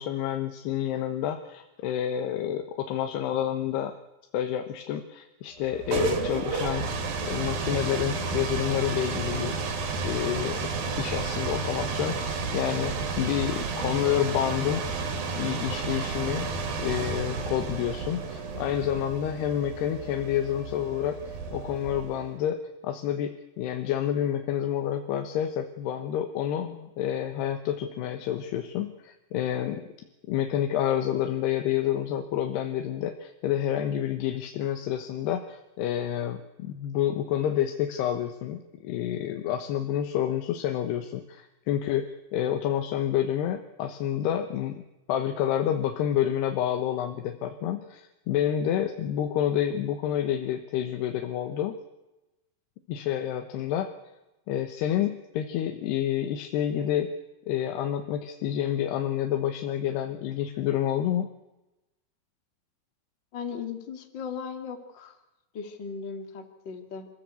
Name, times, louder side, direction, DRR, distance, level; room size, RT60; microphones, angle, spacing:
voice 1, 0.0-4.0 4.3-6.9 7.2-9.6 10.0-10.6 11.0-14.8 15.3-16.5 16.8-29.9 30.3-42.1 42.3-44.8 45.1-51.8 52.9-53.9 54.5-57.1 57.5-61.3, left 10 dB, 85° left, 7 dB, 3.3 m, -29 dB
sound 1, 5.6-22.3, right 4 dB, 65° right, 4.2 m, -31 dB
voice 2, 63.3-65.1 65.5-67.1, left 6 dB, 35° left, 6 dB, 2.3 m, -37 dB
28.0 x 15.0 x 8.3 m, 0.99 s
omnidirectional pair, 4.6 m